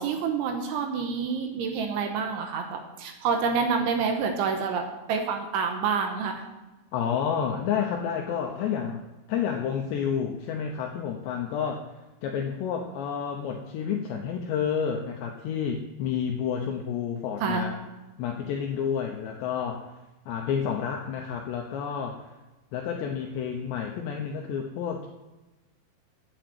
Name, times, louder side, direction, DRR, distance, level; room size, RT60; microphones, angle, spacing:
voice 1, 0.0-6.4 17.4-17.7, right 5 dB, 75° right, 4 dB, 3.2 m, -28 dB
voice 2, 6.9-9.0 9.3-11.9 12.2-17.7 18.2-19.9 20.3-22.3 22.7-25.1, left 7 dB, 80° left, 2 dB, 2.5 m, -30 dB
9.1 x 8.9 x 7.7 m, 1.1 s
omnidirectional pair, 6.0 m